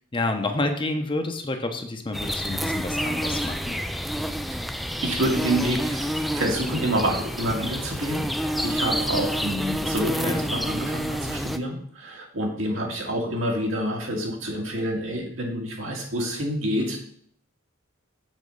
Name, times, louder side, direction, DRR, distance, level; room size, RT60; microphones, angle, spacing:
voice 1, 0.1-3.8 10.2-10.5, left 2 dB, 25° left, 5 dB, 0.8 m, -29 dB
sound 1, 2.1-11.6, equal, ahead, 0.3 m, -28 dB
voice 2, 5.0-17.0, right 1 dB, 75° right, 0 dB, 2.2 m, -28 dB
7.4 x 4.4 x 6.5 m, 0.62 s
head